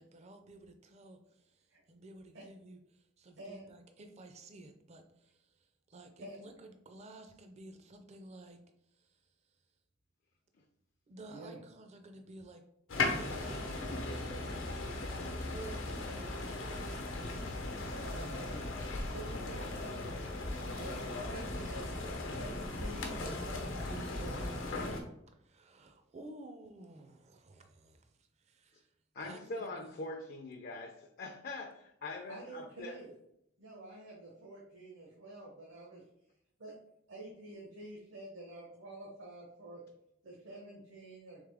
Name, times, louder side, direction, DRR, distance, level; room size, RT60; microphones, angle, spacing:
voice 1, 0.0-5.6 5.9-8.6 9.0-9.2 11.1-12.6 13.0-14.6 15.5-17.5 25.3-28.9 29.2-30.0, right 2 dB, 35° right, 7 dB, 0.4 m, -53 dB
voice 2, 3.4-3.7 6.2-6.5 11.3-11.6 18.0-18.5 18.9-20.0 20.6-22.0 22.2-24.5 32.3-33.1 33.6-36.0 36.6-36.7 37.1-39.8 40.2-41.4, right 2 dB, 75° right, -3 dB, 0.9 m, -48 dB
sound 1, 12.9-25.0, left 2 dB, 85° left, 0.8 m, -37 dB
voice 3, 29.1-33.0, left 2 dB, 50° left, 2 dB, 0.5 m, -43 dB
3.5 x 3.5 x 3.4 m, 0.77 s
head